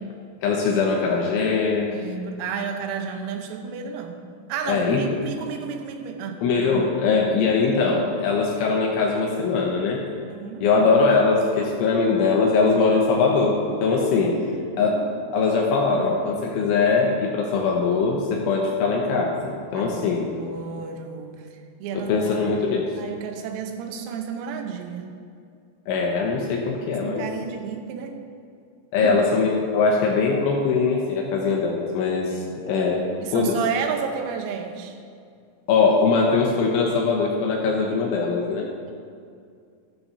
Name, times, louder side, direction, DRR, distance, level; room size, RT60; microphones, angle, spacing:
voice 1, 0.4-1.9 4.7-5.0 6.4-10.0 10.6-14.4 14.8-15.0 15.3-20.3 21.9-22.9 25.9-27.2 28.9-33.6 35.7-38.7, left 4 dB, 75° left, -1 dB, 3.1 m, -21 dB
voice 2, 1.9-4.2 4.5-6.5 10.3-10.7 14.4-15.2 16.0-16.1 19.7-20.0 20.3-21.5 21.8-25.1 26.8-28.2 29.0-29.2 32.3-32.5 33.2-35.0, right 6 dB, 90° right, 4 dB, 3.7 m, -32 dB
13.5 x 13.0 x 2.7 m, 2.3 s
omnidirectional pair, 5.9 m